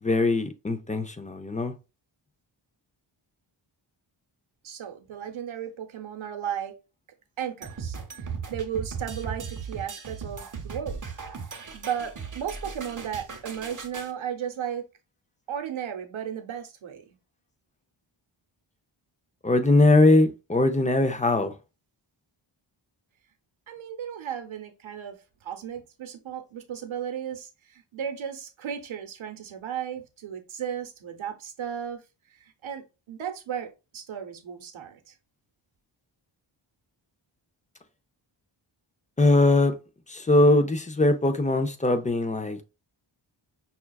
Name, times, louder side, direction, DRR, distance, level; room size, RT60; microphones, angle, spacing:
voice 1, 0.0-1.7 19.4-21.5 39.2-39.7 40.1-42.6, left 2 dB, 15° left, 0.4 m, -21 dB
voice 2, 4.6-6.8 7.4-11.0 11.5-14.8 15.5-17.2 23.7-32.0 32.3-35.1, right 9 dB, 75° right, 0.8 m, -35 dB
sound 1, 7.6-14.1, right 5 dB, 40° right, 0.8 m, -37 dB
5.6 x 2.3 x 2.2 m
wide cardioid pair, 90°, 48 cm